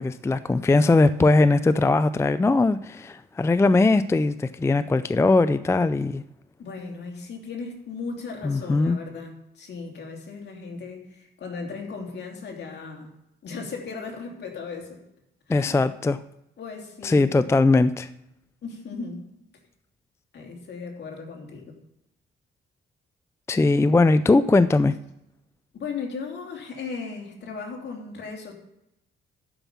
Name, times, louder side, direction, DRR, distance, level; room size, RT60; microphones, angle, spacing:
voice 1, 0.0-6.2 8.4-9.0 15.5-16.2 17.0-18.1 23.5-24.9, left 3 dB, 15° left, 14 dB, 0.4 m, -20 dB
voice 2, 6.6-13.1 13.4-15.0 15.5-15.9 16.6-17.4 18.6-19.2 20.3-21.8 25.7-28.5, left 4 dB, 60° left, 1 dB, 2.9 m, -36 dB
11.5 x 5.4 x 7.2 m, 0.87 s
cardioid pair, 90°, 20 cm